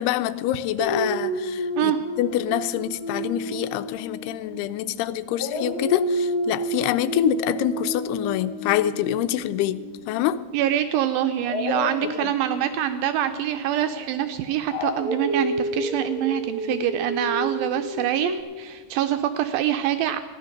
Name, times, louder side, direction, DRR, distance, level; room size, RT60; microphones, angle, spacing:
voice 1, 0.0-10.4 12.2-12.3, left 13 dB, 85° left, 14 dB, 2.6 m, -26 dB
Dog, 0.8-4.9 5.3-10.3 11.4-18.4, equal, 45° left, 1.8 m, -30 dB
voice 2, 10.5-20.2, right 11 dB, 85° right, 8 dB, 2.1 m, -25 dB
14.5 x 10.5 x 6.5 m, 1.4 s
omnidirectional pair, 4.6 m